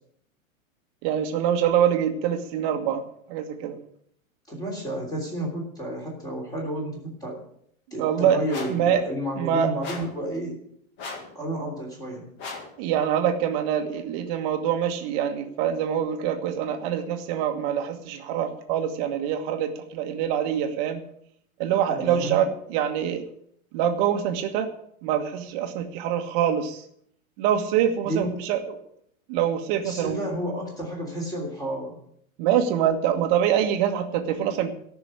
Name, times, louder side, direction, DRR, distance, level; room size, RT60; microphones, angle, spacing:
voice 1, 1.0-3.0 3.3-3.8 8.0-8.4 8.7-9.0 9.4-9.7 12.8-21.0 21.6-23.3 23.7-24.7 25.0-26.8 27.4-28.8 29.3-30.2 32.4-34.7, right 9 dB, 30° right, 6 dB, 1.6 m, -25 dB
voice 2, 4.5-7.4 7.9-10.6 11.3-12.3 21.9-22.4 28.0-28.3 29.8-32.0, right 1 dB, 10° left, -1 dB, 3.2 m, -31 dB
sound 1, 8.5-8.9 9.8-10.2 11.0-11.4 12.4-12.8, left 4 dB, 25° left, 1.9 m, -37 dB
13.5 x 6.2 x 9.5 m, 0.68 s
hypercardioid pair, 165°, 42 cm